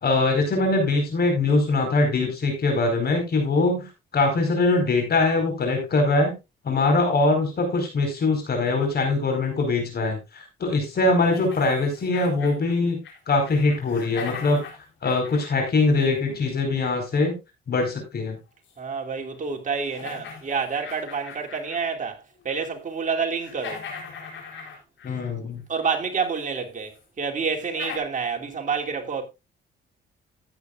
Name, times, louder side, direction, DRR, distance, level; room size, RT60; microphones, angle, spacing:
voice 1, 0.0-3.9 4.1-6.3 6.6-13.0 13.3-14.6 15.0-17.4 17.7-18.4 25.0-25.6, left 3 dB, 55° left, 4.7 m, -22 dB
sound 1, 11.2-13.2 13.4-16.5 18.7-18.8 19.3-19.4 19.8-22.0 22.3-22.8 23.1-25.3 26.4-26.5 26.9-27.0 27.5-28.0, left 5 dB, 70° left, 3.9 m, -40 dB
voice 2, 18.8-23.8 25.7-29.2, right 5 dB, 40° right, 2.9 m, -28 dB
14.5 x 9.1 x 2.4 m
cardioid pair, 90°, 20 cm